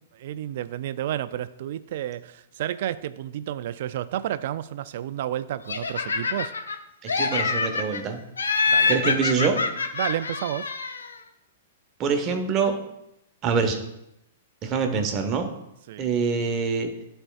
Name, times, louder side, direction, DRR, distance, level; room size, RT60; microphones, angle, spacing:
voice 1, 0.1-6.5 8.7-8.9 10.0-10.7 15.9-16.1, right 12 dB, 60° right, 0.3 m, -31 dB
Laughter, 5.7-6.8 7.1-8.0 8.4-11.1, left 4 dB, 80° left, 0.6 m, -25 dB
voice 2, 7.0-8.2 8.9-9.6 12.0-12.8 13.4-13.8 14.6-15.5 16.0-16.9, right 5 dB, 35° right, 1.0 m, -25 dB
12.0 x 4.4 x 2.3 m
hypercardioid pair, 110°, 0 cm